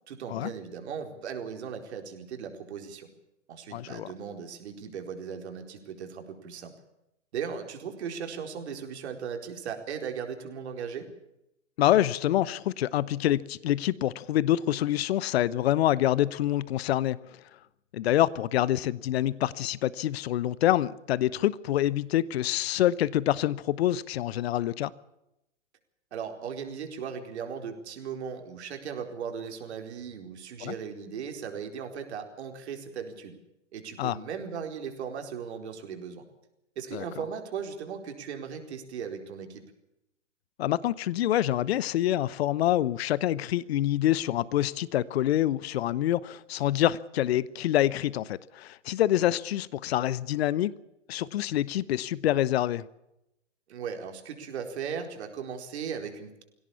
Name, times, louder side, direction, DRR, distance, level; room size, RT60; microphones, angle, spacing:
voice 1, 0.1-3.1 3.5-6.7 7.3-11.1 26.1-33.4 33.7-36.2 36.8-39.6 53.7-56.4, right 7 dB, 60° right, 5 dB, 4.5 m, -37 dB
voice 2, 3.7-4.1 11.8-17.2 17.9-24.9 30.6-30.7 34.0-34.2 36.9-37.0 40.6-50.7 51.1-52.9, left 13 dB, 55° left, 19 dB, 1.0 m, -26 dB
24.0 x 17.0 x 7.1 m, 0.86 s
hypercardioid pair, 125°, 37 cm